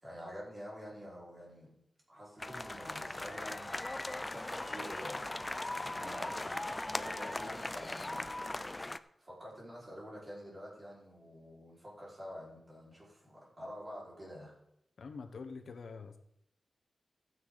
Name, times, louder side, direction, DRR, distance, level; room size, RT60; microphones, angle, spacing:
voice 1, 0.0-1.7 2.1-3.8 4.2-5.4 5.7-8.3 9.2-14.5, equal, 25° right, -6 dB, 4.9 m, -48 dB
sound 1, 2.4-9.0, left 2 dB, 20° left, 0.4 m, -39 dB
voice 2, 15.0-16.2, left 4 dB, 75° left, 7 dB, 1.0 m, -45 dB
14.5 x 9.5 x 4.1 m, 0.78 s
wide cardioid pair, 155°, 0 cm